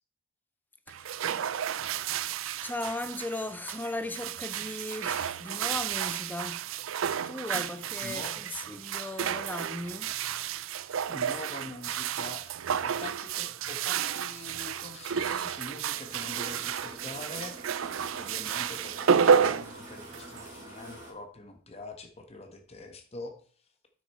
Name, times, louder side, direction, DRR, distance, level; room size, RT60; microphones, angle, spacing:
voice 1, 0.9-1.2 2.6-6.7 7.3-10.1, left 2 dB, 10° left, 0.5 m, -37 dB
sound 1, 0.9-20.5, right 7 dB, 75° right, 0.4 m, -31 dB
voice 2, 8.0-8.5 11.1-12.5 12.8-17.6 18.2-23.4, left 2 dB, 30° left, 1.3 m, -44 dB
sound 2, 16.0-21.1, right 1 dB, 35° right, 4.6 m, -47 dB
9.2 x 6.5 x 4.3 m
head